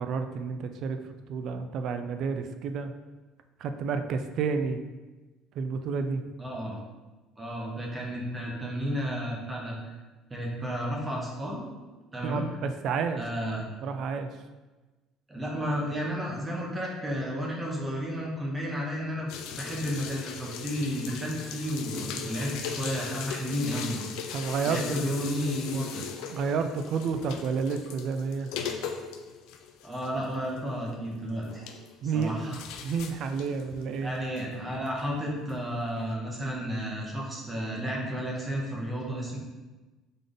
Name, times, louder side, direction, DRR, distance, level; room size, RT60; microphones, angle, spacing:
voice 1, 0.0-2.9 3.6-4.8 5.6-6.2 12.2-13.2 13.8-14.4 22.0-22.3 24.3-24.8 26.3-28.5 32.0-34.1, right 5 dB, 50° right, 8 dB, 0.3 m, -30 dB
voice 2, 6.4-6.8 7.4-9.9 10.3-11.6 12.1-12.4 13.2-13.6 15.3-24.1 24.6-26.0 29.8-31.7 32.1-32.6 34.0-39.4, equal, 15° right, -2 dB, 0.7 m, -32 dB
sound 1, 19.3-35.0 35.5-35.6 36.0-36.1, left 7 dB, 75° left, 0.4 m, -39 dB
3.8 x 3.7 x 3.4 m, 1.2 s
cardioid pair, 150°, 0 cm